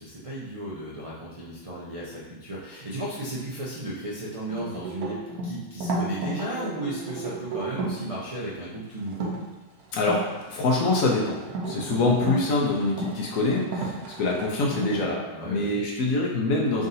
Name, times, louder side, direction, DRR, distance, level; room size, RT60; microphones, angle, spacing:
voice 1, 0.0-9.3 15.3-15.8, right 1 dB, 55° right, -7 dB, 0.4 m, -35 dB
sound 1, 4.5-8.0 9.1-9.4 9.9-15.1, right 2 dB, 85° right, 1.2 m, -33 dB
voice 2, 9.9-16.9, left 2 dB, 70° left, -2 dB, 1.1 m, -25 dB
3.7 x 2.5 x 4.0 m, 1.1 s
omnidirectional pair, 1.6 m